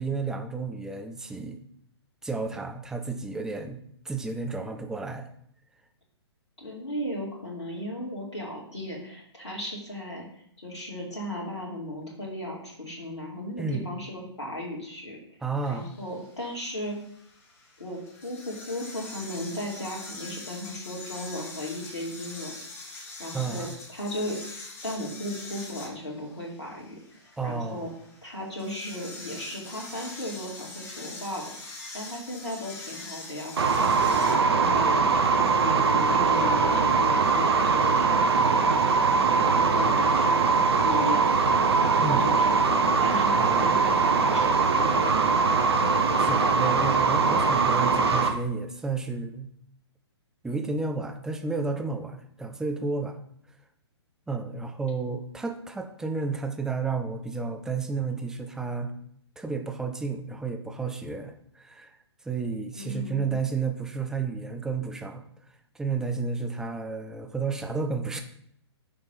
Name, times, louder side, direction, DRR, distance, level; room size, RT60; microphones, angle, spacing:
voice 1, 0.0-1.6 2.2-3.8 4.0-5.3 13.6-13.9 15.4-15.9 23.3-23.7 27.4-27.9 42.0-42.3 43.4-43.8 45.8-45.9 46.2-49.5 50.4-53.2 54.3-58.9 59.4-62.0 62.2-65.2 65.7-68.2, right 4 dB, 5° right, 5 dB, 0.5 m, -31 dB
voice 2, 6.6-15.2 15.7-17.0 17.8-22.6 22.9-24.4 24.8-27.9 28.2-31.4 31.9-33.9 34.6-35.1 35.5-38.2 38.5-39.0 39.3-41.4 41.7-45.7 62.7-63.4, left 1 dB, 80° left, -3 dB, 2.2 m, -36 dB
sound 1, 15.6-34.3, left 2 dB, 15° left, 1.4 m, -43 dB
sound 2, 33.6-48.3, right 4 dB, 65° right, 1.0 m, -22 dB
6.7 x 3.5 x 5.6 m, 0.68 s
figure-of-eight pair, 125°, 14 cm